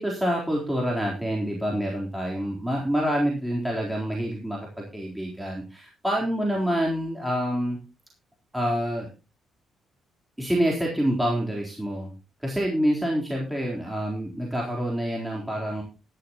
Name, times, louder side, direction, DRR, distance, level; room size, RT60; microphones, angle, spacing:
voice 1, 0.0-4.7 4.9-7.8 8.5-9.1 10.4-12.1 12.4-15.8, equal, 5° right, -2 dB, 3.8 m, -27 dB
14.0 x 12.0 x 3.0 m, 0.29 s
cardioid pair, 90°, 0 cm